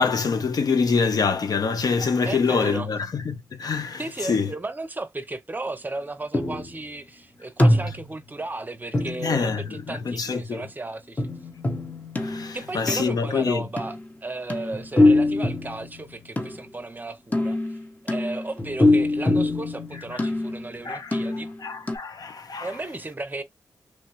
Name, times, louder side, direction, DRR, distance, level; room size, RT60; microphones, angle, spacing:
voice 1, 0.0-4.0 4.3-4.5 9.2-10.6 12.2-13.6 20.8-21.1 21.6-22.7, left 5 dB, 60° left, 0.6 m, -25 dB
voice 2, 2.2-2.9 4.0-11.3 12.5-17.8 18.1-21.5 22.6-23.4, right 2 dB, 25° right, 0.6 m, -34 dB
sound 1, 6.3-6.8 7.6-8.3 8.9-9.9 11.2-13.2 13.8-14.1 14.5-16.7 17.3-20.8 21.1-21.6 21.9-22.0, left 2 dB, 20° left, 0.8 m, -24 dB
3.0 x 2.2 x 2.9 m
cardioid pair, 50°, 7 cm